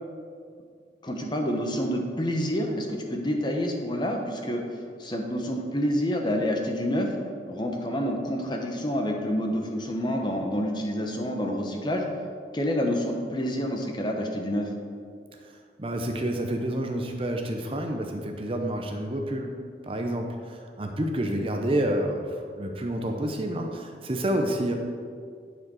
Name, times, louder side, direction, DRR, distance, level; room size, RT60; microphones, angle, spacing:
voice 1, 1.0-4.6 5.0-7.1 7.5-12.0 12.5-14.7, equal, 25° left, 2 dB, 1.0 m, -28 dB
voice 2, 15.8-24.7, right 1 dB, 30° right, 3 dB, 0.7 m, -29 dB
10.5 x 4.8 x 6.3 m, 2.2 s
head